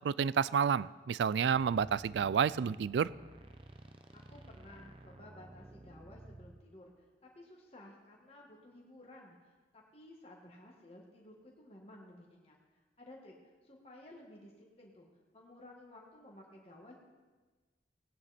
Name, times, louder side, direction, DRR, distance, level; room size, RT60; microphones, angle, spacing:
voice 1, 0.0-3.1, right 7 dB, 70° right, 20 dB, 0.3 m, -30 dB
sound 1, 1.5-6.6, right 1 dB, 25° right, 0.7 m, -53 dB
voice 2, 4.1-6.9 7.2-12.6 13.0-13.4 13.6-15.1 15.3-16.9, left 1 dB, 30° left, -2 dB, 1.7 m, -55 dB
17.5 x 9.6 x 4.3 m, 1.3 s
head